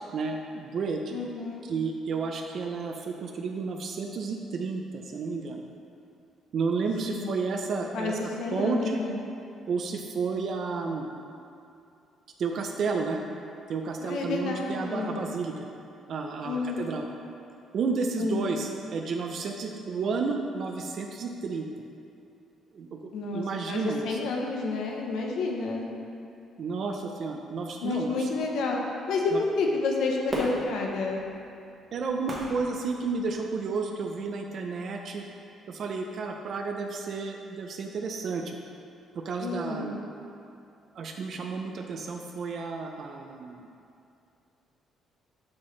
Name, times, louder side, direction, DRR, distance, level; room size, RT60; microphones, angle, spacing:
voice 1, 0.1-1.1 1.6-5.6 6.5-8.2 8.5-9.0 9.7-11.1 12.4-13.2 13.7-15.7 16.1-17.1 17.7-21.7 22.7-24.2 26.6-28.3 29.3-29.4 31.9-35.3 35.7-38.6 39.1-40.0 40.9-43.6, right 4 dB, 50° right, 3 dB, 0.4 m, -31 dB
voice 2, 1.1-1.6 7.1-7.3 7.9-9.2 14.0-15.2 16.4-16.9 18.2-18.4 23.1-25.9 27.8-31.2 39.4-40.0, left 3 dB, 75° left, 0 dB, 0.7 m, -30 dB
Fireworks, 30.3-33.6 34.2-34.3, equal, 20° right, 1.1 m, -37 dB
6.2 x 5.7 x 3.2 m, 2.6 s
cardioid pair, 135°, 0 cm